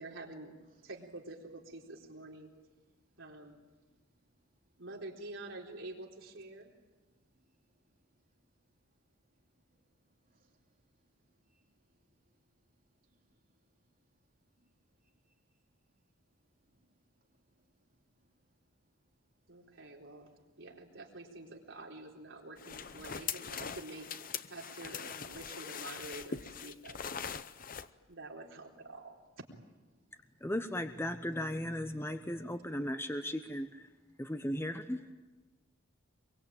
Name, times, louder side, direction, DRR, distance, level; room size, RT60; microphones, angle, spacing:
voice 1, 0.0-0.5 0.8-2.5 3.2-3.6 4.8-6.7 19.5-20.3 20.6-24.1 24.5-27.1 28.1-29.2, right 2 dB, 70° right, -1 dB, 4.2 m, -47 dB
voice 2, 2.7-3.2 3.7-4.8 6.9-18.9 19.2-20.6 21.5-21.6 23.0-23.6 27.6-28.2 29.9-30.5 34.1-34.2, right 2 dB, 45° right, 1 dB, 3.3 m, -75 dB
sound 1, 22.6-27.9, left 7 dB, 45° left, 0.8 m, -42 dB
voice 3, 30.4-33.9 34.2-35.0, left 1 dB, 10° left, 8 dB, 1.0 m, -36 dB
24.0 x 23.5 x 9.0 m, 1.2 s
head